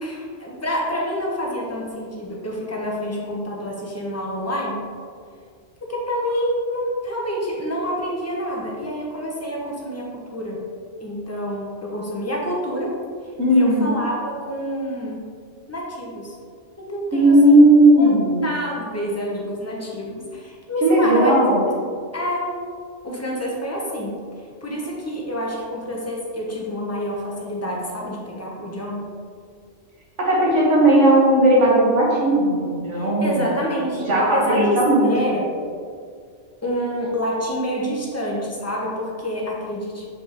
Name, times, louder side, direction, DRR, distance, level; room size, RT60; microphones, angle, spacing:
voice 1, 0.0-4.9 5.9-10.6 11.0-13.0 13.5-15.3 15.7-16.3 16.8-17.6 18.0-18.2 18.4-21.3 22.1-22.6 23.0-29.1 32.9-35.5 36.6-40.1, equal, 15° left, -3 dB, 0.9 m, -27 dB
voice 2, 13.4-13.9 17.1-18.4 20.8-21.6 30.2-33.4 34.1-35.3, right 1 dB, 75° right, -5 dB, 1.8 m, -16 dB
6.3 x 5.2 x 3.0 m, 2.1 s
omnidirectional pair, 1.2 m